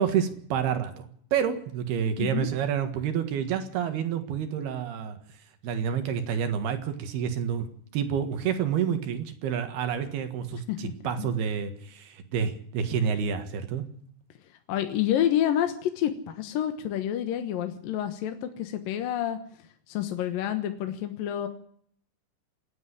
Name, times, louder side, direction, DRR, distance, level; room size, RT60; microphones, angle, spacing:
voice 1, 0.0-5.2 5.6-7.7 7.9-13.9, right 8 dB, 70° right, 8 dB, 3.5 m, -29 dB
voice 2, 2.2-2.5 10.7-10.9 11.2-11.3 14.7-19.4 19.9-21.5, left 11 dB, 65° left, 7 dB, 2.5 m, -28 dB
27.0 x 10.0 x 9.9 m, 0.62 s
omnidirectional pair, 5.1 m